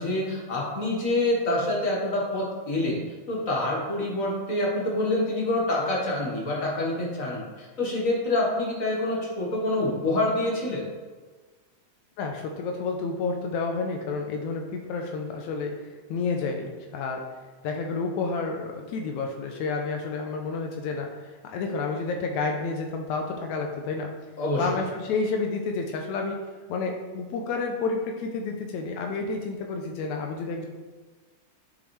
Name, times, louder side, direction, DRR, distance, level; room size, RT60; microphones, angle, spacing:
voice 1, 0.0-3.0 3.3-10.9 24.4-24.8, left 1 dB, 45° left, -3 dB, 1.1 m, -26 dB
voice 2, 12.2-15.7 16.1-17.2 17.6-24.1 24.6-26.4 26.7-30.7, left 4 dB, 85° left, 2 dB, 2.0 m, -30 dB
7.2 x 6.9 x 3.2 m, 1.4 s
omnidirectional pair, 3.4 m